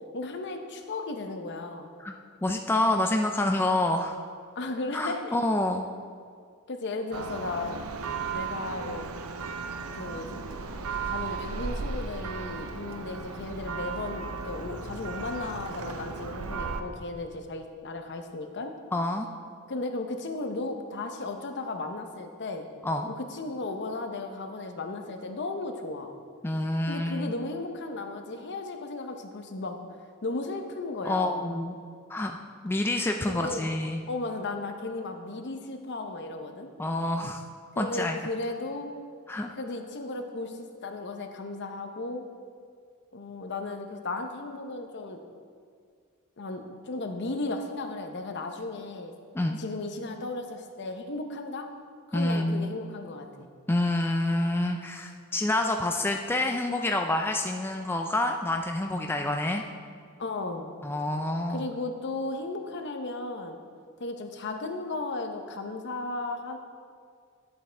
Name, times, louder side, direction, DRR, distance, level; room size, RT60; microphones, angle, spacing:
voice 1, 0.1-1.9 4.6-5.4 6.7-7.8 8.3-9.1 9.9-10.4 11.0-18.7 19.7-22.7 23.1-26.1 26.9-29.8 30.2-31.5 33.3-33.7 34.1-36.7 37.8-38.9 39.6-42.2 43.1-45.2 46.4-49.1 49.6-51.7 52.1-53.5 60.2-60.7 61.5-63.6 64.0-66.6, left 2 dB, 55° left, 5 dB, 0.8 m, -35 dB
voice 2, 2.4-4.2 4.9-5.9 18.9-19.3 22.8-23.1 26.4-27.3 31.0-31.7 32.1-32.4 32.6-34.0 36.8-37.4 37.8-38.2 39.3-39.5 49.3-49.6 52.1-52.7 53.7-59.6 60.8-61.6, left 1 dB, 10° left, 3 dB, 0.3 m, -27 dB
Church bell, 7.1-16.8, right 4 dB, 80° right, 0.6 m, -35 dB
11.5 x 8.0 x 3.4 m, 2.1 s
head